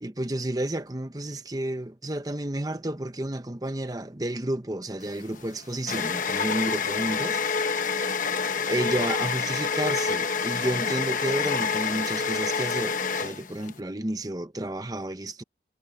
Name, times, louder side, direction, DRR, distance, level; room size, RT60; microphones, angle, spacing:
voice 1, 0.0-7.4 8.7-15.4, right 1 dB, 20° right, 1.0 m, -31 dB
sound 1, 5.1-13.8, left 5 dB, 50° left, 1.0 m, -27 dB
head